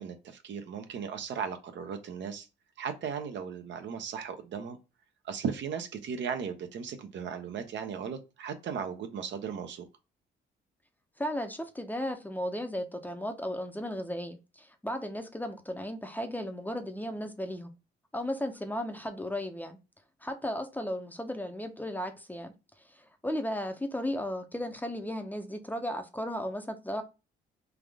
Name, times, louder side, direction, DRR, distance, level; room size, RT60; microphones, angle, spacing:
voice 1, 0.0-2.5 2.8-4.8 5.2-9.8, right 6 dB, 65° right, 0.7 m, -36 dB
voice 2, 11.2-17.7 18.1-19.8 20.2-22.5 22.9-27.0, left 1 dB, 10° left, 0.6 m, -35 dB
3.5 x 2.5 x 3.4 m
cardioid pair, 90°, 20 cm